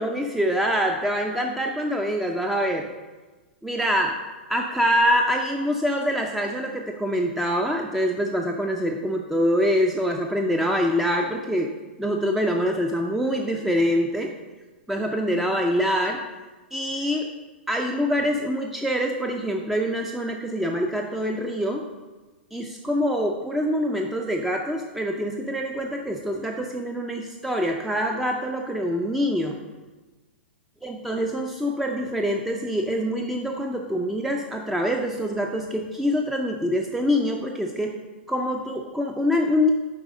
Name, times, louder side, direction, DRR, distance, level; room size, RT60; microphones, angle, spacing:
voice 1, 0.0-2.9 3.6-4.2 4.5-11.7 12.0-14.3 14.9-16.2 16.7-17.3 17.7-21.9 22.5-29.6 30.8-38.0 38.3-39.7, equal, 5° right, 2 dB, 0.5 m, -25 dB
7.7 x 4.7 x 5.1 m, 1.2 s
hypercardioid pair, 110°, 6 cm